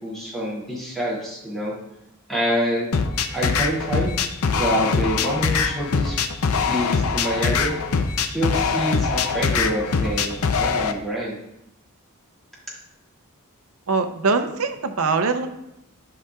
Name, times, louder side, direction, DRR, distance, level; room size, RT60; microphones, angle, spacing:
voice 1, 0.0-1.7 2.3-2.9 3.3-4.1 4.6-6.3 6.7-7.8 8.2-11.4, equal, ahead, -6 dB, 2.5 m, -26 dB
sound 1, 2.9-10.9, left 5 dB, 75° left, 0.6 m, -23 dB
voice 2, 13.9-15.5, right 4 dB, 70° right, 8 dB, 0.7 m, -22 dB
11.5 x 5.8 x 2.4 m, 0.85 s
head